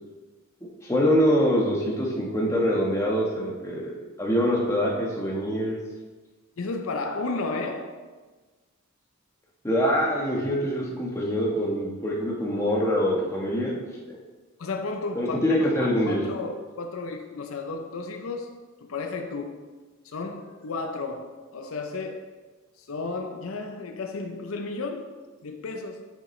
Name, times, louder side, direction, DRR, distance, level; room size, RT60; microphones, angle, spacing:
voice 1, 0.8-5.8 9.6-13.8 15.1-16.2, equal, 15° left, 1.2 m, -24 dB
voice 2, 6.6-8.0 14.6-19.7 20.0-22.4 22.8-26.1, left 3 dB, 75° left, 0.6 m, -33 dB
8.0 x 6.1 x 3.2 m
head